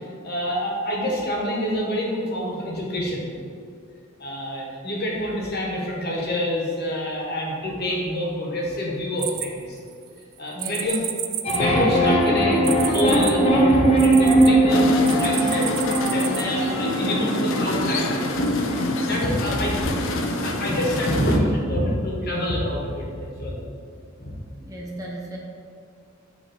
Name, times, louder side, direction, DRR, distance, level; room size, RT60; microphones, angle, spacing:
voice 1, 0.2-3.3 4.2-9.8 10.4-11.0 11.5-15.7 16.1-18.5 19.0-19.7 20.3-23.6 24.2-24.3, equal, 50° left, -2 dB, 1.2 m, -26 dB
sound 1, 9.2-10.0 10.6-14.5 15.0-16.4, right 12 dB, 85° right, 0.4 m, -30 dB
voice 2, 10.5-10.9 19.3-20.4 24.6-25.4, right 1 dB, 15° right, -3 dB, 0.6 m, -36 dB
sound 2, 11.4-21.7, right 1 dB, 30° left, 0.7 m, -22 dB
sound 3, 14.7-21.4, left 2 dB, 70° left, 0.5 m, -27 dB
7.9 x 2.9 x 4.3 m, 2.3 s
head